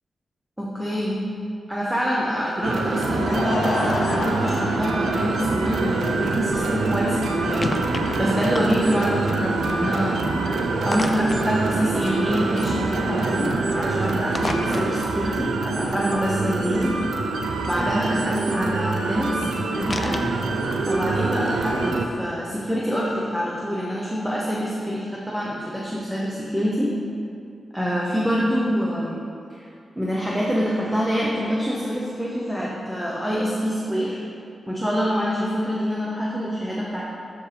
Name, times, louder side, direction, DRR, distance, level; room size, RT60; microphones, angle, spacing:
voice 1, 0.6-1.2 1.7-7.7 8.2-10.2 10.8-17.0 17.7-19.4 19.7-20.3 20.9-26.9 27.7-29.2 29.6-29.7 30.0-34.2 34.7-37.0, equal, 5° right, -5 dB, 0.7 m, -25 dB
sound 1, 2.6-22.1, right 3 dB, 80° right, 0.5 m, -25 dB
Laughter / Crowd, 2.8-9.7, left 2 dB, 80° left, 0.7 m, -32 dB
sound 2, 5.2-21.9, left 2 dB, 25° left, 0.4 m, -37 dB
7.0 x 6.6 x 3.3 m, 2.5 s
wide cardioid pair, 165°, 0 cm